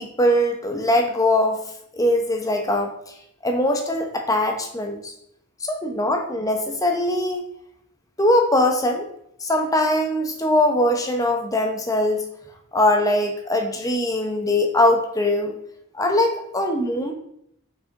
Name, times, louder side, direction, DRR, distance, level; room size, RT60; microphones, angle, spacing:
voice 1, 0.0-1.6 1.9-3.1 3.4-5.1 5.6-7.4 8.2-9.1 9.4-12.2 12.7-15.5 15.9-17.1, left 1 dB, 15° left, 4 dB, 0.7 m, -21 dB
5.8 x 4.8 x 3.6 m, 0.75 s
head